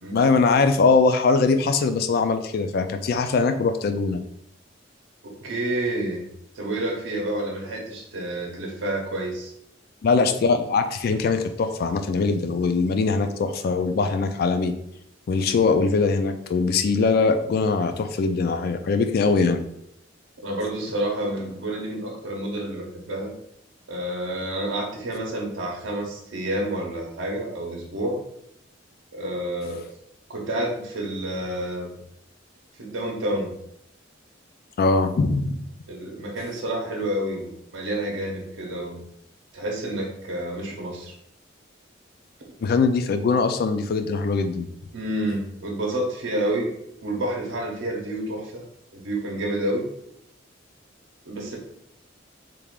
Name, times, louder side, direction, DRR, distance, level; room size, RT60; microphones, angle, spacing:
voice 1, 0.1-4.2 10.0-14.7 15.3-19.6 34.8-35.6 42.6-44.7, left 4 dB, 50° left, 8 dB, 0.3 m, -21 dB
voice 2, 5.2-6.3 6.5-9.5 20.4-23.3 23.9-28.2 29.1-29.9 30.3-32.0 32.8-33.6 35.9-39.0 39.5-41.1 44.9-46.7 47.0-48.7 48.9-49.9 51.3-51.6, right 1 dB, 80° right, -1 dB, 0.7 m, -29 dB
3.3 x 2.4 x 3.5 m, 0.75 s
head